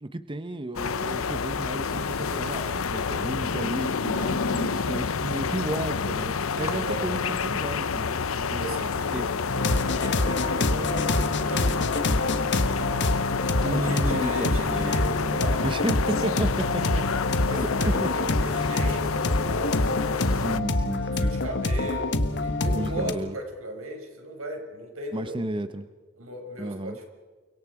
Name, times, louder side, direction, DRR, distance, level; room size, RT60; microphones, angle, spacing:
voice 1, 0.0-8.2 8.5-8.6 8.9-9.3 13.6-14.9 15.6-17.0 17.9-18.3 18.6-18.7 20.3-21.3 22.7-23.4 25.1-25.9 26.6-27.0, right 1 dB, 25° right, 10 dB, 0.8 m, -33 dB
sound 1, 0.8-20.6, left 5 dB, 80° left, 0.8 m, -29 dB
voice 2, 6.6-7.5 8.6-9.4 9.7-13.1 13.6-15.7 16.1-16.4 16.9-17.0 17.4-20.4 21.1-25.4 26.2-27.0, right 1 dB, 85° right, 3 dB, 5.5 m, -37 dB
sound 2, 9.5-23.1, left 2 dB, 60° left, 1.5 m, -26 dB
30.0 x 24.5 x 4.9 m, 1.4 s
head